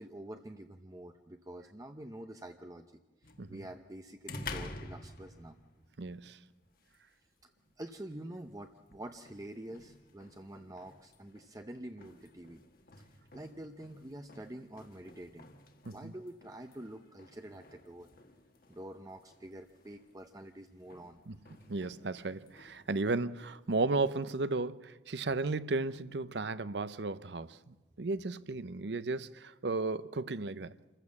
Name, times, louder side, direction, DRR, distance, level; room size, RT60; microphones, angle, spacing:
voice 1, 0.0-2.8 3.2-5.6 7.8-12.6 13.0-15.5 15.9-18.1 18.7-21.2, right 1 dB, 20° right, 0.7 m, -47 dB
sound 1, 3.2-23.0, left 3 dB, 55° left, 1.7 m, -51 dB
voice 2, 6.0-6.4 15.9-16.1 21.3-21.4 21.7-30.7, right 3 dB, 70° right, 0.7 m, -34 dB
27.0 x 15.0 x 7.2 m
head